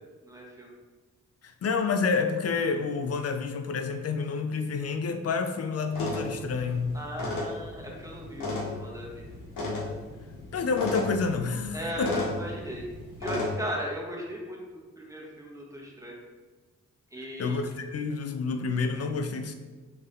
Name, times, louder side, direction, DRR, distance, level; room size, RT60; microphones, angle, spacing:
voice 1, 0.2-0.7 6.9-9.3 11.7-12.8 13.2-16.2 17.1-17.6, equal, 10° right, -2 dB, 1.2 m, -37 dB
voice 2, 1.4-7.0 10.5-12.1 17.2-19.6, left 5 dB, 50° left, 7 dB, 0.4 m, -29 dB
sound 1, 5.9-13.5, left 2 dB, 75° left, 1.0 m, -34 dB
3.5 x 2.6 x 3.6 m, 1.3 s
supercardioid pair, 40°, 33 cm